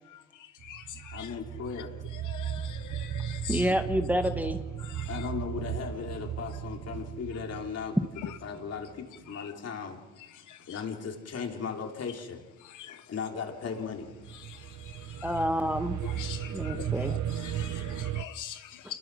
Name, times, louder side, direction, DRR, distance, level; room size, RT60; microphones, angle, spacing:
sound 1, 0.6-9.3 13.8-18.2, right 10 dB, 70° right, 0.8 m, -36 dB
voice 1, 1.1-1.9 5.1-8.0 8.4-10.0 10.7-12.4 12.9-14.1, left 6 dB, 55° left, 3.5 m, -37 dB
voice 2, 2.2-3.7 5.0-5.3 9.4-9.5 10.7-10.8 12.8-12.9 16.0-18.6, left 11 dB, 80° left, 0.7 m, -43 dB
voice 3, 3.5-4.6 15.2-16.0 16.5-17.1, equal, 5° right, 1.3 m, -28 dB
27.0 x 21.5 x 6.2 m
cardioid pair, 90°, 30 cm